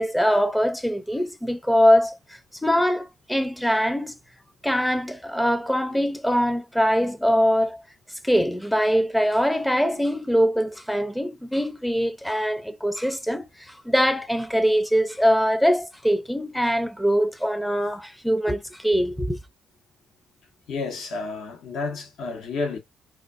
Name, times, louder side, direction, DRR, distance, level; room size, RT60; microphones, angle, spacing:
voice 1, 0.0-2.2 2.6-4.1 4.6-7.8 8.2-19.4, equal, 5° left, 0.5 m, -22 dB
voice 2, 20.7-22.8, left 4 dB, 75° left, 1.1 m, -30 dB
4.1 x 2.4 x 2.5 m
cardioid pair, 90°, 0 cm